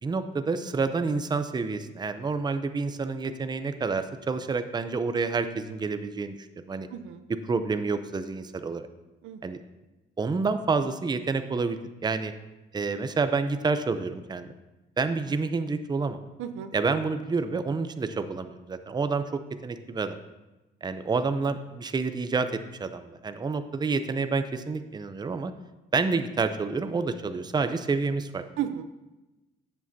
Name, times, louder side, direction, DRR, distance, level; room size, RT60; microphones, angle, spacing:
voice 1, 0.0-6.9 7.3-8.9 9.4-9.6 10.2-12.3 12.7-14.5 15.0-16.2 16.7-20.2 20.8-25.5 25.9-28.4, right 4 dB, 20° right, 10 dB, 0.5 m, -28 dB
voice 2, 6.9-7.2 9.2-9.5 16.4-16.7 28.6-28.8, right 10 dB, 85° right, 10 dB, 0.6 m, -33 dB
10.5 x 7.4 x 2.7 m, 1.0 s
cardioid pair, 90°, 20 cm